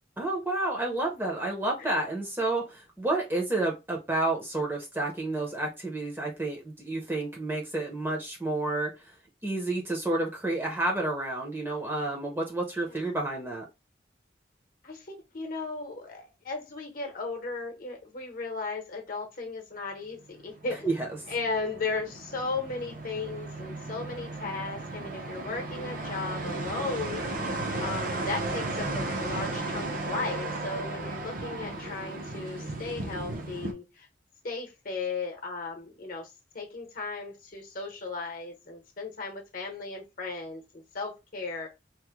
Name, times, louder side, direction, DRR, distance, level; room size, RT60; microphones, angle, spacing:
voice 1, 0.2-9.1 9.4-13.7 20.8-21.1, right 2 dB, 10° right, 0.7 m, -30 dB
voice 2, 14.8-20.8 21.3-27.3 27.8-34.1 34.4-41.7, left 3 dB, 50° left, 0.8 m, -36 dB
sound 1, 20.3-33.7, right 2 dB, 50° right, 0.6 m, -35 dB
2.9 x 2.1 x 3.5 m
head